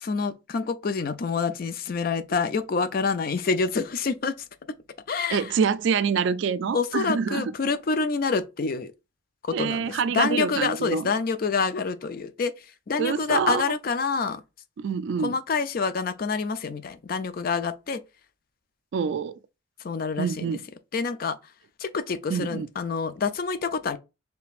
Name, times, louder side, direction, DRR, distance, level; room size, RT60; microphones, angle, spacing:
voice 1, 0.0-4.3 5.1-5.5 6.7-8.9 9.6-12.5 12.9-14.4 15.2-18.0 19.8-20.6 20.9-21.4 21.8-24.0, left 4 dB, 45° left, 0.4 m, -27 dB
voice 2, 5.3-7.5 9.5-11.1 13.0-13.6 14.8-15.4 18.9-19.3 20.2-20.6 22.3-22.7, right 6 dB, 60° right, 0.3 m, -26 dB
5.0 x 3.3 x 2.4 m
head